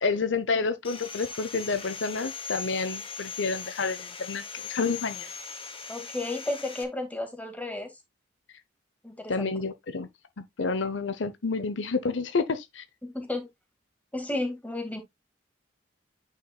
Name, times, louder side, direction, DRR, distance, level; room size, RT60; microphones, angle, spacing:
voice 1, 0.0-5.3 9.3-10.1 10.4-12.8, left 4 dB, 75° left, 0.8 m, -29 dB
Sawing, 0.8-6.8, left 6 dB, 30° left, 1.3 m, -39 dB
voice 2, 5.9-7.9 9.0-9.5 13.0-13.5 14.1-15.0, left 2 dB, 10° left, 2.0 m, -33 dB
9.1 x 5.9 x 2.3 m
head